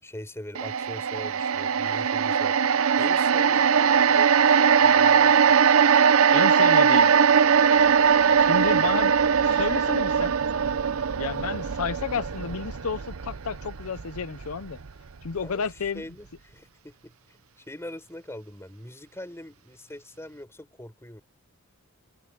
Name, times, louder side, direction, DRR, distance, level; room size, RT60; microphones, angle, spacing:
voice 1, 0.0-2.6 3.0-5.4 8.7-9.0 15.4-15.7 15.9-21.2, left 1 dB, 10° left, 5.5 m, -42 dB
sound 1, 0.5-14.9 15.2-15.4, right 7 dB, 65° right, 0.7 m, -21 dB
voice 2, 6.3-7.1 8.4-10.4 11.1-14.8 15.2-16.0, left 5 dB, 70° left, 0.7 m, -31 dB
head